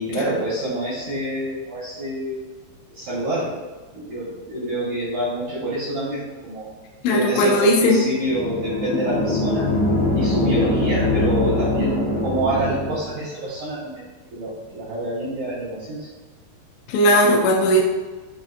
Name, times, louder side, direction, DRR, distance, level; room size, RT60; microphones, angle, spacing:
voice 1, 0.0-2.5 2.9-3.6 3.9-6.7 7.1-9.7 10.1-14.0 14.3-16.1, right 1 dB, 80° right, -9 dB, 1.8 m, -27 dB
voice 2, 7.0-8.0 16.9-17.8, equal, 85° left, -1 dB, 2.9 m, -17 dB
sound 1, 8.2-13.2, left 2 dB, 70° left, 2.3 m, -22 dB
7.0 x 2.6 x 2.5 m, 1.3 s
omnidirectional pair, 5.2 m